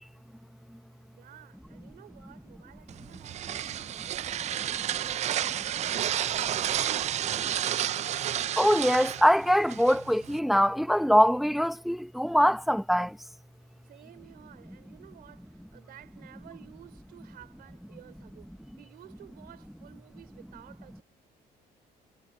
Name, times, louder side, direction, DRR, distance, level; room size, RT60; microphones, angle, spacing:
voice 1, 1.2-7.4 13.8-21.0, right 12 dB, 65° right, 3.4 m, -54 dB
sound 1, 2.9-10.4, right 11 dB, 45° right, 0.4 m, -31 dB
voice 2, 8.6-13.1, equal, ahead, 0.7 m, -23 dB
cardioid pair, 110°, 17 cm